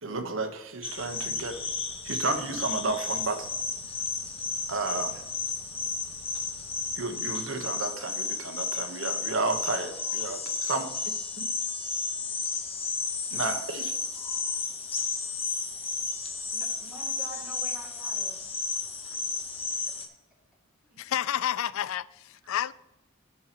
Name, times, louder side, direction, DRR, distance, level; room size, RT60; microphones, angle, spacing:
voice 1, 0.0-1.6 2.0-3.5 4.7-5.2 6.9-10.9 13.3-14.0, right 3 dB, 65° right, 1.1 m, -32 dB
sound 1, 0.8-20.1, left 4 dB, 30° left, 0.9 m, -33 dB
sound 2, 1.0-7.0, equal, 15° left, 1.7 m, -55 dB
voice 2, 16.5-18.4 20.8-21.1, equal, 5° right, 2.3 m, -46 dB
voice 3, 21.0-22.7, left 10 dB, 75° left, 0.3 m, -30 dB
15.0 x 5.6 x 3.0 m
head